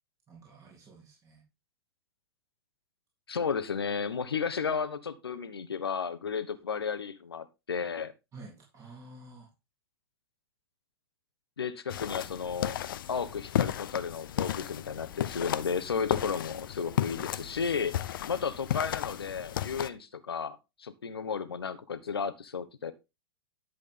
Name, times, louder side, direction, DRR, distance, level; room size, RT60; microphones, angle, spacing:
voice 1, 0.3-1.4 8.3-9.5, right 2 dB, 25° right, 3.5 m, -50 dB
voice 2, 3.3-8.1 11.6-12.8 13.1-18.0 18.3-22.9, left 6 dB, 75° left, 1.1 m, -33 dB
sound 1, 11.9-19.9, left 11 dB, 60° left, 0.7 m, -34 dB
11.0 x 7.7 x 3.7 m
figure-of-eight pair, 100°, 13 cm